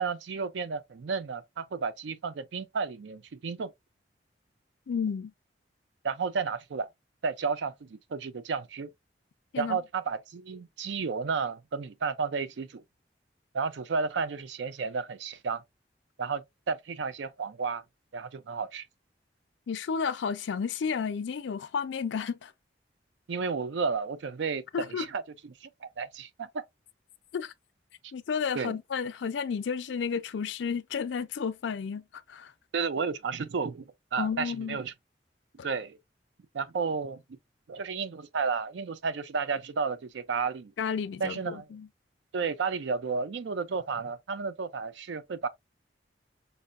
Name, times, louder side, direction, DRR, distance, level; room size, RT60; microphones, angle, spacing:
voice 1, 0.0-3.7 6.0-6.9 7.2-8.9 9.6-12.8 13.5-15.6 16.2-17.8 18.1-18.9 23.3-25.2 25.6-26.6 28.5-28.8 32.7-34.9 35.6-36.0 36.5-37.2 37.7-40.7 41.2-41.7 42.3-45.5, right 5 dB, 85° right, 0.4 m, -32 dB
voice 2, 4.9-5.3 9.5-9.8 19.7-22.5 24.7-25.1 27.3-27.5 28.1-32.5 34.2-34.8 35.6-35.7 40.8-41.9, left 6 dB, 85° left, 0.4 m, -32 dB
5.3 x 2.0 x 2.3 m
head